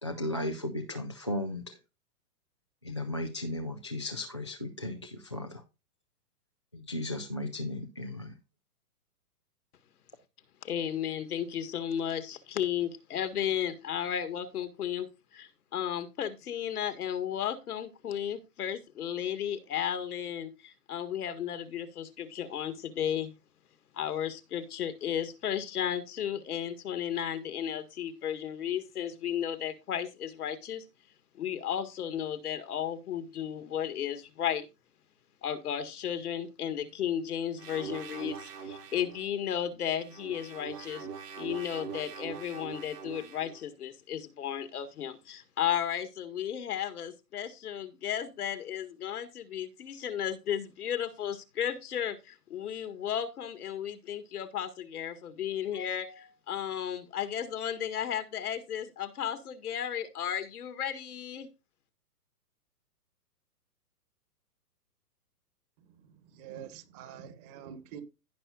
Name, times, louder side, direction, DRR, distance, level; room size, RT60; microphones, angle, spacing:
voice 1, 0.0-1.8 2.8-5.6 6.7-8.4, left 1 dB, 20° left, 0.3 m, -35 dB
voice 2, 10.6-23.3 23.9-30.9 31.3-34.7 35.4-41.1 41.4-61.5, left 9 dB, 70° left, 1.9 m, -34 dB
sound 1, 37.6-39.2 40.0-43.6, right 6 dB, 80° right, 2.4 m, -42 dB
voice 3, 65.8-68.0, right 8 dB, 25° right, 1.4 m, -47 dB
15.5 x 5.7 x 2.5 m
hypercardioid pair, 150°, 47 cm